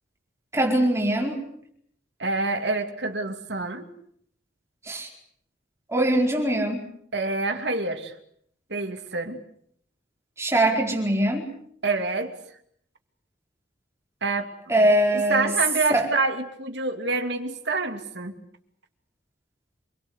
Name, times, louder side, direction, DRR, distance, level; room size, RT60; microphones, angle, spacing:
voice 1, 0.5-1.4 4.8-5.1 5.9-6.9 10.4-11.4 14.7-15.5 15.9-16.1, right 1 dB, 15° right, 1 dB, 4.7 m, -22 dB
voice 2, 2.2-3.9 7.1-8.1 8.7-9.4 11.8-12.4 14.2-18.4, right 3 dB, 65° right, 6 dB, 2.8 m, -27 dB
27.0 x 22.0 x 8.2 m, 0.68 s
head